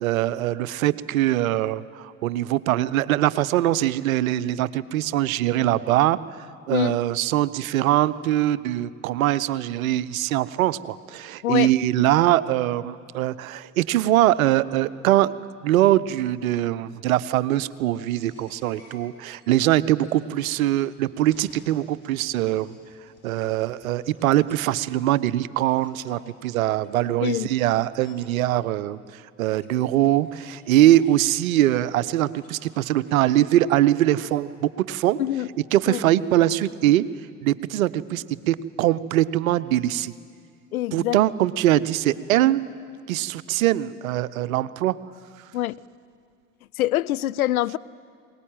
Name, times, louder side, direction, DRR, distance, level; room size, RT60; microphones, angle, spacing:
voice 1, 0.0-15.4 15.6-22.7 23.2-35.2 35.7-37.0 37.4-40.1 40.9-42.6 43.1-45.0, right 14 dB, 70° right, 0.7 m, -22 dB
sound 1, 18.1-19.4 20.0-24.8 25.7-27.1 27.9-28.3 29.6-31.3 32.2-34.4, left 2 dB, 30° left, 8.0 m, -54 dB
voice 2, 40.7-41.2 45.5-45.7 46.8-47.8, left 14 dB, 80° left, 0.6 m, -24 dB
22.0 x 19.0 x 9.0 m
figure-of-eight pair, 65°, 43 cm